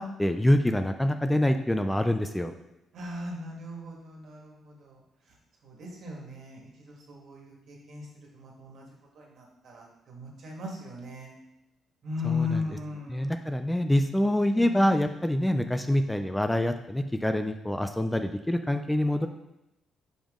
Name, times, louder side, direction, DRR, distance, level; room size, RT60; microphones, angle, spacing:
voice 1, 0.0-2.5 12.2-12.6 13.1-19.3, left 1 dB, 5° left, 7 dB, 0.4 m, -26 dB
voice 2, 2.9-5.0 5.6-8.1 8.3-8.9 9.2-11.3 12.0-13.3 14.5-14.8, left 3 dB, 70° right, -1 dB, 1.7 m, -37 dB
5.2 x 5.1 x 3.7 m, 0.91 s
cardioid pair, 90°, 0 cm